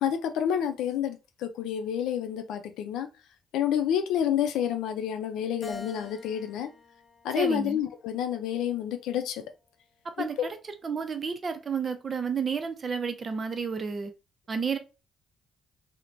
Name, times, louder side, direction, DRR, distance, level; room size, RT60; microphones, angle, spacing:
voice 1, 0.0-3.1 3.5-6.7 7.2-9.4 10.2-10.5, left 9 dB, 90° left, 0.4 m, -29 dB
Keyboard (musical), 5.6-8.1 8.7-9.9, left 3 dB, 20° left, 0.5 m, -48 dB
voice 2, 7.3-7.8 10.0-10.6 10.8-14.1 14.5-14.8, right 6 dB, 40° right, 0.5 m, -31 dB
3.0 x 2.1 x 2.5 m
cardioid pair, 90°, 0 cm